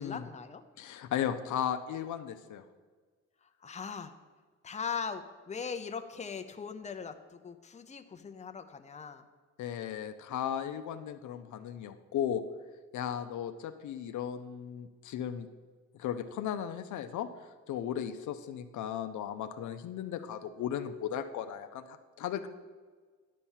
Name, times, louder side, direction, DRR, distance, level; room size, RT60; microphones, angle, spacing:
voice 1, 0.0-0.6 3.6-4.1 4.6-9.3, left 6 dB, 25° left, 7 dB, 0.7 m, -40 dB
voice 2, 0.8-2.6 9.6-12.4 12.9-15.5 16.0-17.3 17.7-22.5, left 9 dB, 75° left, 8 dB, 0.7 m, -36 dB
11.0 x 4.3 x 7.3 m, 1.5 s
cardioid pair, 90°, 30 cm